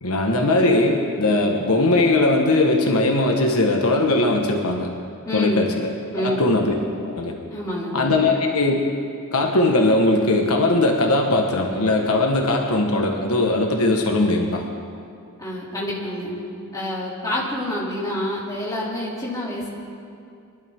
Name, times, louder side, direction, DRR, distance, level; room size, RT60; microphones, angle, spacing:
voice 1, 0.0-4.9 5.3-5.9 6.2-6.7 7.0-7.4 7.9-8.8 9.3-14.6, left 2 dB, 80° left, 1 dB, 1.4 m, -19 dB
voice 2, 5.2-5.7 6.1-6.5 7.5-8.0 15.4-16.3 16.7-19.7, left 1 dB, 15° left, -7 dB, 2.8 m, -27 dB
23.0 x 11.5 x 3.6 m, 2.4 s
head